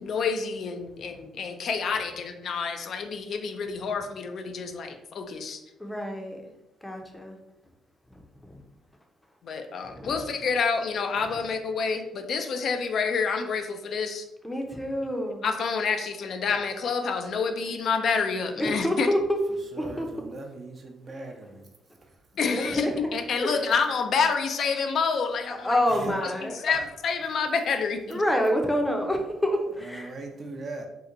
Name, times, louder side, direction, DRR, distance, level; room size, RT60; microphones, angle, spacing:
voice 1, 0.0-5.6 9.4-14.2 15.4-19.1 22.4-25.7 26.2-28.2, left 5 dB, 60° left, 6 dB, 0.3 m, -28 dB
voice 2, 5.8-6.4 6.8-7.4 8.1-8.6 9.8-10.3 11.3-11.4 14.4-15.4 18.6-19.4 19.8-20.1 21.1-21.3 22.5-23.1 23.4-23.6 25.5-26.8 28.1-30.1, equal, 10° left, 3 dB, 0.6 m, -28 dB
voice 3, 19.7-21.7 26.0-26.2 29.9-30.9, right 3 dB, 50° right, 3 dB, 0.6 m, -39 dB
2.8 x 2.1 x 3.7 m, 0.93 s
cardioid pair, 90°, 0 cm